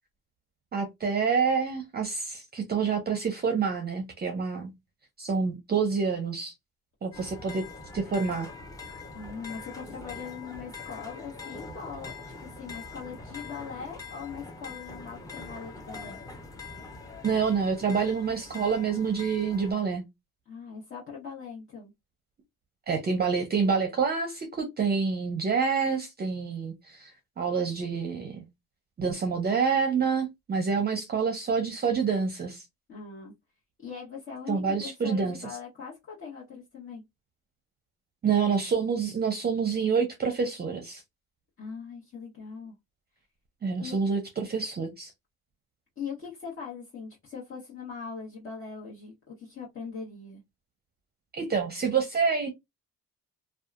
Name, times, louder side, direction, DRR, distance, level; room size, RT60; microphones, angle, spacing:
voice 1, 0.7-4.7 5.2-6.5 7.0-7.7 7.9-8.5 17.2-20.0 22.9-28.4 29.0-32.7 34.5-35.4 38.2-41.0 43.6-45.1 51.3-52.5, right 5 dB, 30° right, 0.6 m, -27 dB
sound 1, 7.1-19.7, left 4 dB, 10° left, 0.8 m, -43 dB
voice 2, 9.1-16.2 20.5-21.9 32.9-33.3 33.8-37.0 41.6-42.7 43.8-44.0 46.0-50.4, left 6 dB, 45° left, 1.3 m, -41 dB
2.7 x 2.3 x 2.4 m
cardioid pair, 90°, 30 cm